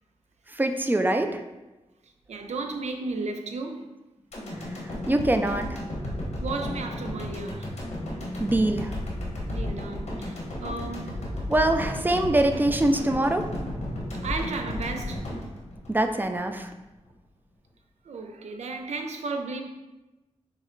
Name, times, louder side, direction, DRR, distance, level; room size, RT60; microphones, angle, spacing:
voice 1, 0.5-1.4 5.1-5.8 8.4-8.9 11.5-13.5 15.9-16.7, right 1 dB, 15° right, 0.4 m, -23 dB
voice 2, 2.3-3.9 6.4-7.7 9.5-11.2 14.2-15.3 18.0-19.6, right 3 dB, 85° right, 0.5 m, -34 dB
sound 1, 4.3-16.5 16.9-17.0, left 1 dB, 80° left, 1.2 m, -33 dB
6.0 x 2.1 x 3.8 m
wide cardioid pair, 85°, 11 cm